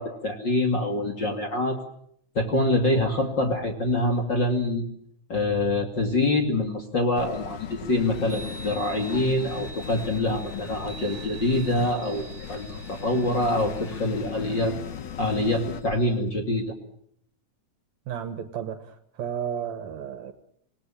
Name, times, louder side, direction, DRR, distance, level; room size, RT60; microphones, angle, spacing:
voice 1, 0.0-1.8 2.3-4.8 5.3-14.7 15.2-16.7, left 1 dB, 40° left, 3.0 m, -25 dB
sound 1, 7.2-15.8, left 8 dB, 80° left, 2.9 m, -38 dB
Chime, 8.0-16.2, right 3 dB, 10° left, 4.2 m, -46 dB
voice 2, 18.1-20.3, right 8 dB, 70° right, 2.5 m, -33 dB
27.0 x 19.5 x 8.8 m
omnidirectional pair, 3.5 m